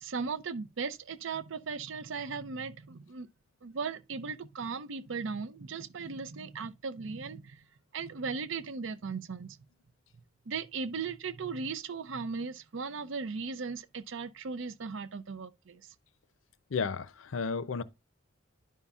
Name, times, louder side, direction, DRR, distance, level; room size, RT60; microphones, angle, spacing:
voice 1, 0.0-3.3 3.6-7.6 7.9-9.6 10.5-15.8, right 5 dB, 75° right, 0.5 m, -37 dB
voice 2, 16.7-17.8, left 5 dB, 85° left, 0.5 m, -32 dB
11.0 x 5.5 x 2.4 m
head